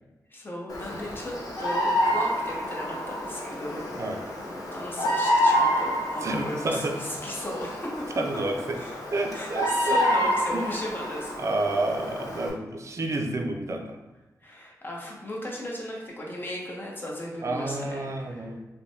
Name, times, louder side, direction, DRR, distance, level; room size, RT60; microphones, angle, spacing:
voice 1, 0.3-1.3 1.6-3.9 4.4-8.0 8.7-9.0 9.3-11.3 14.4-18.5, left 1 dB, 35° left, -2 dB, 0.7 m, -36 dB
Bird vocalization bird call bird song, 0.7-12.5, equal, 70° left, 0.5 m, -28 dB
voice 2, 6.2-7.0 8.2-8.8 9.1-10.0 10.5-10.6 11.4-14.0 17.4-18.6, right 2 dB, 50° right, 4 dB, 0.4 m, -29 dB
3.1 x 2.1 x 2.6 m, 1.1 s
cardioid pair, 60°, 6 cm